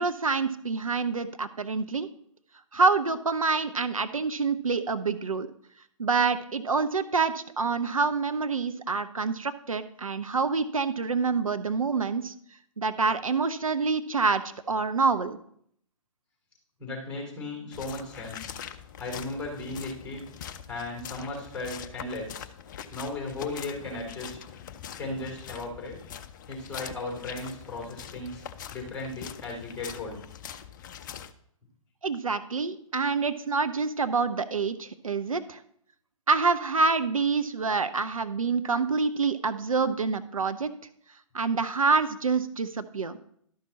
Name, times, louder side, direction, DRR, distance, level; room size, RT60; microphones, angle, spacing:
voice 1, 0.0-2.1 2.7-5.5 6.0-12.3 12.8-14.4 14.7-15.4 32.0-35.6 36.3-40.7 41.3-43.2, right 4 dB, 75° right, 11 dB, 0.6 m, -27 dB
voice 2, 16.8-18.5 19.0-20.2 20.7-22.5 22.9-24.4 25.0-26.0 26.5-28.4 28.7-30.2, left 2 dB, 5° left, -2 dB, 3.3 m, -36 dB
sound 1, 17.7-31.3, left 9 dB, 35° left, 0.5 m, -43 dB
12.0 x 5.7 x 4.1 m, 0.67 s
figure-of-eight pair, 125°, 18 cm